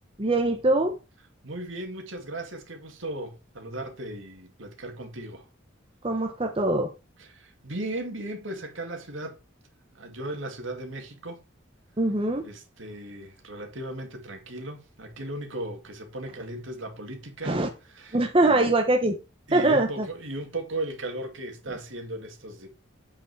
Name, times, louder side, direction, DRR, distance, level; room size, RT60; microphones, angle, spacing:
voice 1, 0.2-1.0 6.0-6.9 12.0-12.4 17.4-17.7 18.1-19.2 19.5-20.1, right 2 dB, 25° right, 0.9 m, -23 dB
voice 2, 1.4-5.4 7.2-9.4 9.9-11.4 12.4-17.6 17.9-18.7 19.5-22.7, right 1 dB, 70° right, 2.1 m, -37 dB
8.4 x 5.5 x 4.7 m
head